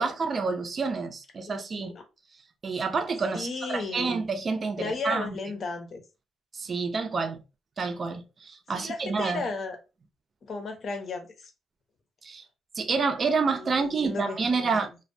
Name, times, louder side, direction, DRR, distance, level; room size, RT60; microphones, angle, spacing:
voice 1, 0.0-2.0 2.6-5.3 6.5-7.4 7.8-9.4 12.2-12.4 12.8-14.9, right 4 dB, 40° right, 0.5 m, -28 dB
voice 2, 3.3-4.1 4.8-6.0 8.7-9.8 10.5-11.5 13.5-14.8, left 3 dB, 50° left, 0.7 m, -34 dB
2.2 x 2.1 x 2.6 m
cardioid pair, 90°, 0 cm